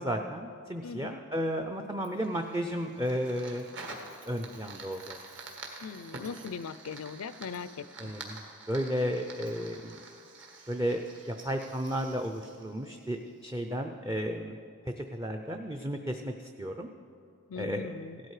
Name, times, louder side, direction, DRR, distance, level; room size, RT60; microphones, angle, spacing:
voice 1, 0.0-3.6 4.3-5.2 8.0-10.0 10.7-14.6 14.8-16.9 17.6-17.8, equal, 15° right, 3 dB, 0.5 m, -33 dB
voice 2, 0.8-1.2 5.8-8.1 17.5-18.2, left 5 dB, 75° left, 16 dB, 0.5 m, -40 dB
Fire, 2.0-13.4, right 3 dB, 55° right, 1.9 m, -47 dB
16.5 x 12.5 x 4.9 m, 2.4 s
head